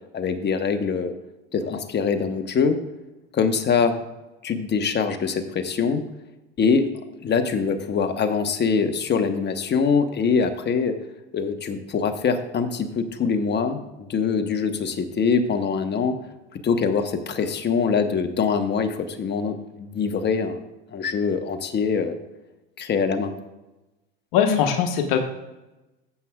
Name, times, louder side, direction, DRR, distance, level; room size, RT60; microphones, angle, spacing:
voice 1, 0.1-1.1 1.5-2.8 3.3-4.0 4.4-6.0 6.6-6.9 7.2-11.0 11.3-16.2 16.5-20.6 20.9-22.2 22.8-23.3, left 5 dB, 35° left, 7 dB, 1.2 m, -23 dB
voice 2, 24.3-25.2, left 8 dB, 75° left, 4 dB, 1.4 m, -20 dB
15.5 x 7.7 x 2.4 m, 1.0 s
hypercardioid pair, 85°, 30 cm